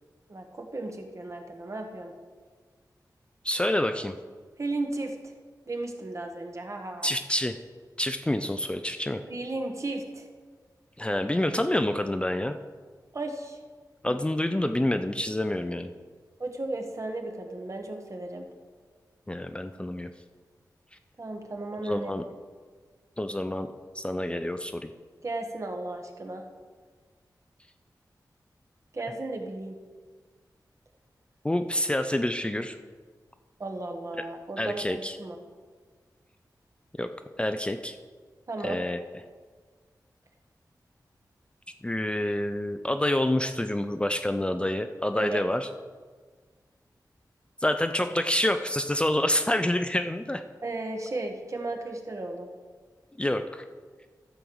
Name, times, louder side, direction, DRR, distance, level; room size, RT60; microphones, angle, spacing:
voice 1, 0.3-2.1 4.6-5.2 5.7-7.1 9.3-10.3 13.1-13.6 14.1-14.2 16.4-18.5 21.2-22.1 25.2-26.4 28.9-29.8 33.6-35.4 38.5-38.8 45.1-45.4 50.6-52.5, right 2 dB, 45° right, 4 dB, 1.3 m, -35 dB
voice 2, 3.4-4.1 7.0-7.6 8.0-9.2 11.0-12.5 14.0-15.9 19.3-20.1 21.8-22.3 23.2-23.7 24.0-24.9 31.4-32.8 34.6-35.2 37.0-37.1 37.4-38.0 38.6-39.0 41.8-45.7 47.6-50.4 53.2-53.6, left 1 dB, 15° left, 8 dB, 0.4 m, -27 dB
12.5 x 4.6 x 7.1 m, 1.5 s
wide cardioid pair, 95°, 7 cm